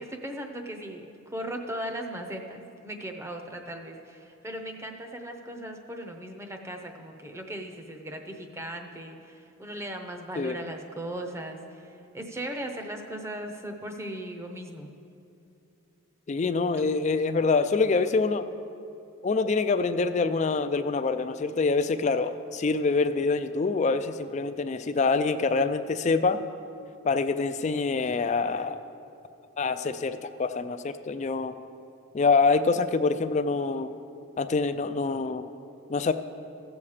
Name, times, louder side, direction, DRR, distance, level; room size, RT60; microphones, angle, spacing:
voice 1, 0.0-15.0 16.8-16.9, right 1 dB, 15° right, 3 dB, 0.7 m, -38 dB
voice 2, 16.3-18.5 19.2-26.4 27.0-28.8 29.6-31.5 32.1-33.9 34.4-35.5 35.9-36.1, left 4 dB, 35° left, 11 dB, 0.3 m, -25 dB
15.5 x 7.1 x 4.9 m, 2.6 s
head